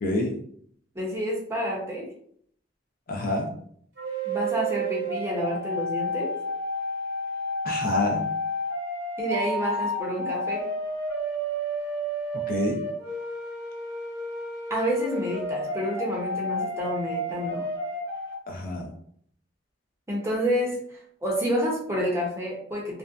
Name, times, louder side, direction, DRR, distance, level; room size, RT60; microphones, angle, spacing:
voice 1, 0.0-0.3 3.1-3.5 7.6-8.2 12.5-12.8 18.5-18.9, left 2 dB, 50° left, 1 dB, 0.5 m, -27 dB
voice 2, 0.9-2.1 4.2-6.3 9.2-10.6 14.7-17.7 20.1-20.8 21.2-23.0, equal, 15° right, -3 dB, 0.6 m, -29 dB
sound 1, 4.0-18.3, equal, 70° right, 0.9 m, -31 dB
2.6 x 2.1 x 2.3 m, 0.62 s
head